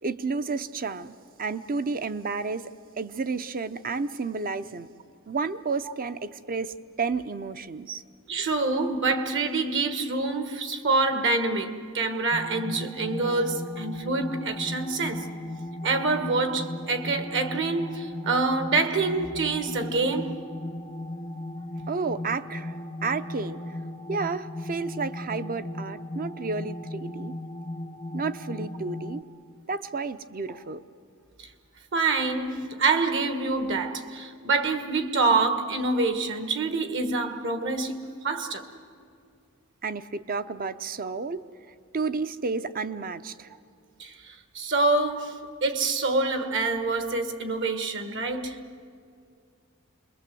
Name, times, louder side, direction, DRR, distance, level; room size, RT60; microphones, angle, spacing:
voice 1, 0.0-4.9 5.3-8.0 21.9-27.4 28.1-29.2 29.7-30.8 39.8-41.5 41.9-43.5, right 4 dB, 40° right, 0.7 m, -31 dB
voice 2, 8.3-15.3 15.8-20.4 31.4-31.5 31.9-38.6 44.0-48.6, right 3 dB, 60° right, 1.6 m, -26 dB
sound 1, 12.3-29.2, left 1 dB, 20° left, 0.6 m, -37 dB
27.5 x 22.0 x 7.7 m
head